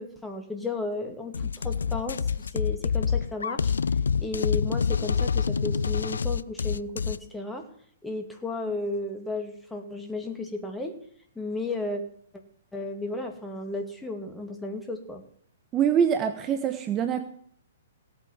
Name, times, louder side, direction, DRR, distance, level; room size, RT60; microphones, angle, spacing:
voice 1, 0.0-3.7 4.2-7.6 8.0-11.0 11.4-12.0 12.7-15.2, left 2 dB, 5° left, 4 dB, 2.5 m, -34 dB
sound 1, 1.3-7.2, left 6 dB, 80° left, 0.5 m, -26 dB
voice 2, 15.7-17.2, right 8 dB, 25° right, 8 dB, 1.1 m, -24 dB
17.0 x 8.7 x 7.4 m, 0.63 s
hypercardioid pair, 125°, 0 cm